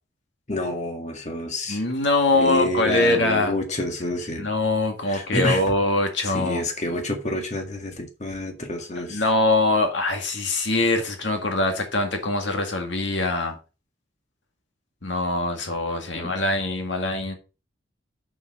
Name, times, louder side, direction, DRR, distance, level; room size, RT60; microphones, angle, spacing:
voice 1, 0.5-1.8 2.3-4.5 5.1-5.6 6.2-9.2 16.2-16.3, left 1 dB, 40° left, 1.9 m, -28 dB
voice 2, 1.7-3.6 4.4-6.6 9.1-13.6 15.0-17.3, left 2 dB, 70° left, 1.9 m, -23 dB
7.2 x 6.7 x 5.1 m
head